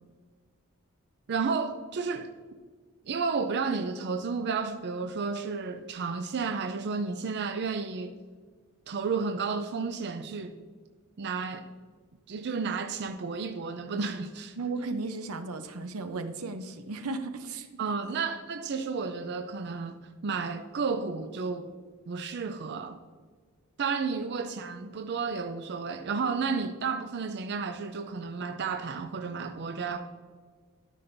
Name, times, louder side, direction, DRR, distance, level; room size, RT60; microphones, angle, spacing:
voice 1, 1.3-2.3 3.1-8.1 8.9-10.6 11.2-11.7 12.3-14.6 17.8-20.0 20.2-21.7 22.1-23.0 23.8-30.0, right 5 dB, 50° right, 0.4 m, -32 dB
voice 2, 14.6-17.7 24.1-24.2, right 3 dB, 80° right, 0.7 m, -35 dB
13.0 x 6.0 x 2.6 m
head